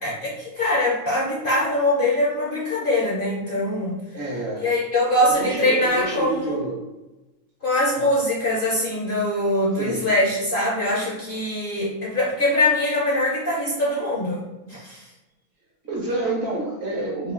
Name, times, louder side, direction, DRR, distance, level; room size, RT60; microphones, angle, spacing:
voice 1, 0.0-4.0 4.6-6.6 7.6-14.4 14.7-15.0, left 1 dB, 50° left, -4 dB, 0.7 m, -22 dB
voice 2, 4.1-4.7 5.1-6.8 8.0-8.1 9.8-10.1 15.8-17.3, right 2 dB, 50° right, -2 dB, 1.1 m, -28 dB
3.8 x 2.7 x 3.6 m, 1.1 s
omnidirectional pair, 1.6 m